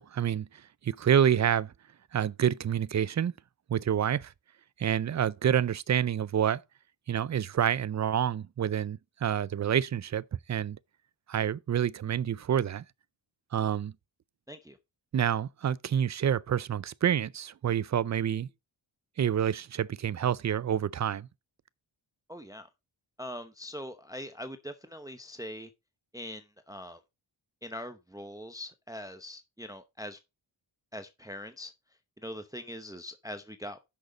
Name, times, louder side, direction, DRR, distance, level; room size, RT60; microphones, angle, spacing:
voice 1, 0.0-1.7 2.1-3.3 3.7-4.3 4.8-6.6 7.1-10.8 11.3-12.8 13.5-13.9 15.1-18.5 19.2-21.3, right 9 dB, 40° right, 0.4 m, -28 dB
voice 2, 22.3-22.7 23.2-25.7 26.1-27.0 27.6-30.2 30.9-31.7 32.2-33.8, equal, 5° right, 0.8 m, -42 dB
10.5 x 6.4 x 3.9 m
wide cardioid pair, 95°, 48 cm